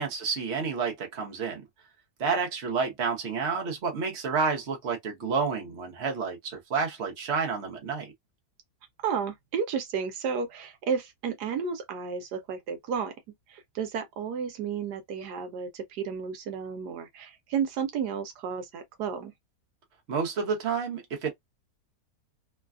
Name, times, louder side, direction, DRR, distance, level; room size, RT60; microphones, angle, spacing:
voice 1, 0.0-1.6 2.2-8.1 20.1-21.3, right 5 dB, 50° right, 1.1 m, -30 dB
voice 2, 9.0-13.1 13.5-19.3, right 6 dB, 80° right, 1.3 m, -32 dB
3.2 x 2.3 x 2.3 m
omnidirectional pair, 1.7 m